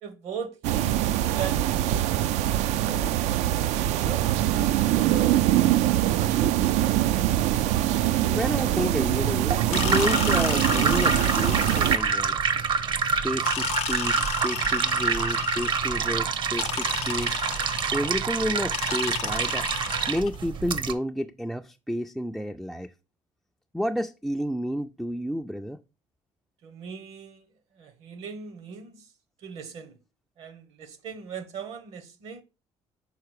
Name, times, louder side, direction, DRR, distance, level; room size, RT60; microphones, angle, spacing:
voice 1, 0.0-3.1 3.9-7.3 26.6-27.5 27.8-29.1 29.4-30.0 30.4-32.4, right 6 dB, 65° right, 1.0 m, -40 dB
sound 1, 0.6-12.0, right 13 dB, 80° right, 0.4 m, -23 dB
voice 2, 8.3-12.4 13.2-17.4 17.9-19.7 20.1-22.9 23.7-25.8, equal, ahead, 0.3 m, -30 dB
sound 2, 9.2-20.9, right 6 dB, 45° right, 0.7 m, -27 dB
sound 3, 9.7-12.3 13.4-16.0 16.6-18.2 18.7-20.4, left 13 dB, 65° left, 0.5 m, -33 dB
5.7 x 4.3 x 4.7 m
cardioid pair, 120°, 12 cm